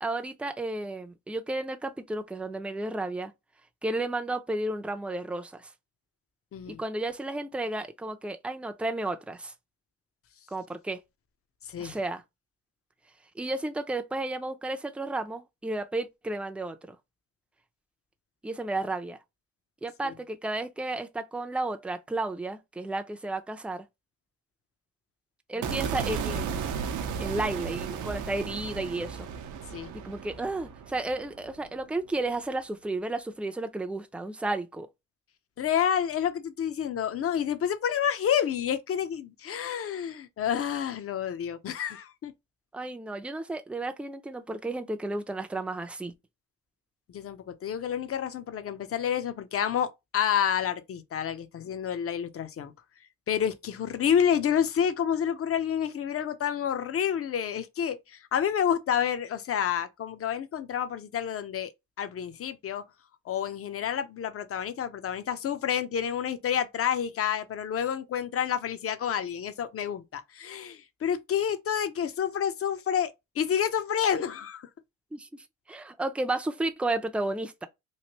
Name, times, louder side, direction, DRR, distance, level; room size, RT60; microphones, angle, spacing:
voice 1, 0.0-3.3 3.8-5.7 6.7-9.5 10.5-11.0 11.8-12.2 13.4-17.0 18.4-19.2 19.8-23.9 25.5-26.7 27.2-29.3 30.0-34.9 42.7-46.1 75.1-77.7, right 2 dB, 5° right, 0.5 m, -33 dB
sound 1, 25.6-31.9, right 6 dB, 80° right, 0.7 m, -34 dB
voice 2, 35.6-42.3 47.1-52.7 53.3-61.7 62.0-62.8 63.3-73.1 73.4-74.6, left 8 dB, 50° left, 0.7 m, -29 dB
3.2 x 2.5 x 2.9 m
cardioid pair, 90°, 30 cm